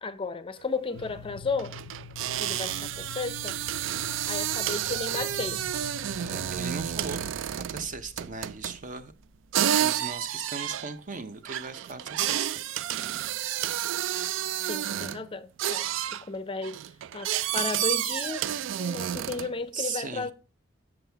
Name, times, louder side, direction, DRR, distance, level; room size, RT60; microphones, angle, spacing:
voice 1, 0.0-1.8 2.4-3.5 4.3-5.6 14.7-16.8 17.1-18.5 18.8-20.3, left 4 dB, 25° left, 0.5 m, -34 dB
sound 1, 0.6-0.7 0.9-1.1 1.6-8.8 9.5-15.2 15.6-16.2 16.6-19.6, right 11 dB, 70° right, 0.3 m, -30 dB
sound 2, 0.9-7.3, left 5 dB, 90° left, 0.4 m, -45 dB
sound 3, 4.6-10.1 10.4-10.5 10.7-10.8 11.1-11.2, left 1 dB, 15° right, 1.1 m, -49 dB
voice 2, 6.2-9.1 9.6-12.6 19.4-20.3, right 5 dB, 40° right, 0.7 m, -38 dB
7.9 x 7.4 x 3.4 m
head